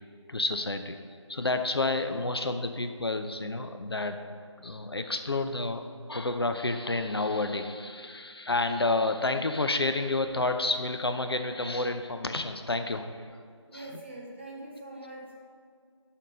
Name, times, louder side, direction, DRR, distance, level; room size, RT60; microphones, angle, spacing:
voice 1, 0.3-1.0 1.3-4.2 4.6-13.3 13.7-13.9, left 2 dB, 55° left, 7 dB, 0.5 m, -30 dB
voice 2, 13.7-15.4, right 1 dB, 20° right, -2 dB, 0.8 m, -43 dB
6.8 x 5.2 x 5.1 m, 2.1 s
figure-of-eight pair, 165°, 16 cm